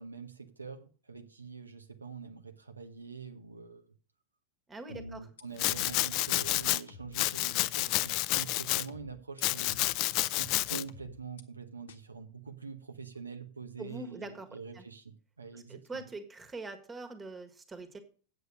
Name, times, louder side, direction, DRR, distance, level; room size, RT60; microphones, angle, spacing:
voice 1, 0.0-3.8 4.9-9.8 10.3-16.1, right 5 dB, 80° right, 6 dB, 1.0 m, -45 dB
voice 2, 4.7-5.3 13.8-14.8 15.5-18.0, right 3 dB, 15° right, 9 dB, 1.6 m, -43 dB
sound 1, 4.9-6.0 6.4-7.2 7.9-8.0 8.9-10.0 10.4-11.4 11.9-12.0, left 2 dB, 65° left, 1.1 m, -49 dB
Domestic sounds home sounds, 5.6-6.8 7.1-8.9 9.4-10.8, left 18 dB, 40° left, 0.4 m, -29 dB
8.6 x 8.0 x 6.3 m, 0.41 s
figure-of-eight pair, 90°, 0 cm